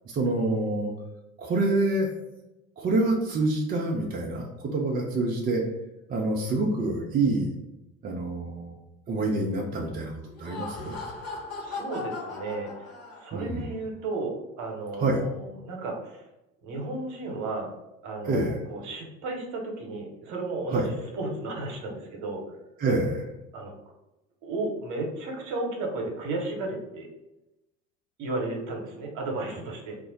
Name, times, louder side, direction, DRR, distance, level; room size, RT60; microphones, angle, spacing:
voice 1, 0.1-0.9 1.4-2.1 2.8-5.6 6.1-7.5 8.0-8.8 9.1-10.1 10.4-11.0 13.3-13.7 15.0-15.2 18.2-18.6 20.7-20.9 22.8-23.3, right 2 dB, 20° right, -1 dB, 0.4 m, -26 dB
Laughter, 10.3-13.5, left 3 dB, 40° left, 1.1 m, -38 dB
voice 2, 11.6-12.9 13.2-16.2 16.6-17.7 18.0-22.6 23.5-23.7 24.4-27.1 28.2-30.0, right 2 dB, 45° right, 1 dB, 0.9 m, -34 dB
2.4 x 2.0 x 3.9 m, 0.94 s
figure-of-eight pair, 65°, 40 cm